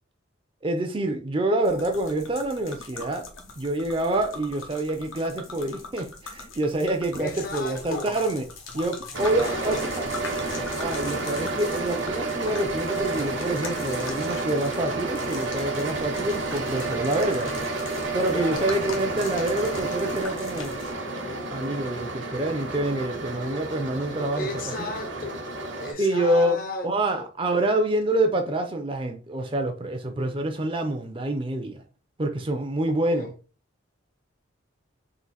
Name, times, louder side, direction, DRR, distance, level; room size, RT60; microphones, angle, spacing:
voice 1, 0.6-3.3 3.6-8.5 8.7-9.8 10.8-17.5 18.1-20.8 21.5-24.5 26.0-26.6 26.8-31.8 32.2-33.3, right 1 dB, 25° right, 0.5 m, -26 dB
sound 1, 1.6-20.9, left 3 dB, 85° left, 0.9 m, -41 dB
voice 2, 7.2-8.2 9.4-9.8 17.1-17.6 18.3-18.7 24.4-25.4 25.8-27.3 33.1-33.4, left 2 dB, 45° left, 0.7 m, -35 dB
sound 2, 9.1-25.9, right 2 dB, 70° right, 1.0 m, -31 dB
3.8 x 2.6 x 4.1 m
head